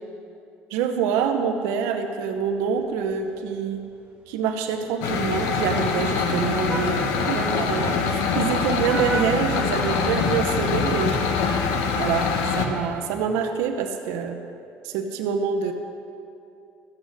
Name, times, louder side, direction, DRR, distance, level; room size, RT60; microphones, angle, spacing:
voice 1, 0.7-3.8 4.3-7.0 7.3-11.1 12.0-14.4 14.8-15.7, right 6 dB, 85° right, 5 dB, 0.9 m, -26 dB
Vehicle horn car horn honking, 2.4-10.5, right 3 dB, 20° right, 2.1 m, -39 dB
sound 1, 5.0-12.7, left 5 dB, 80° left, 1.2 m, -24 dB
13.5 x 8.3 x 6.4 m, 2.6 s
cardioid pair, 120°, 5 cm